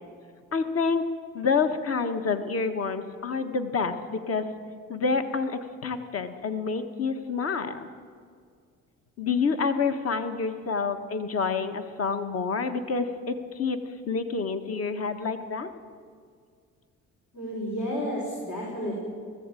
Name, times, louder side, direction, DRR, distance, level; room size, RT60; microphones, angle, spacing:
voice 1, 0.5-1.1 1.3-4.4 4.9-7.9 9.2-13.8 14.1-15.7, left 5 dB, 50° left, 7 dB, 1.6 m, -28 dB
voice 2, 17.3-19.0, equal, 65° left, -4 dB, 6.5 m, -31 dB
19.0 x 15.0 x 9.2 m, 2.1 s
cardioid pair, 90°, 30 cm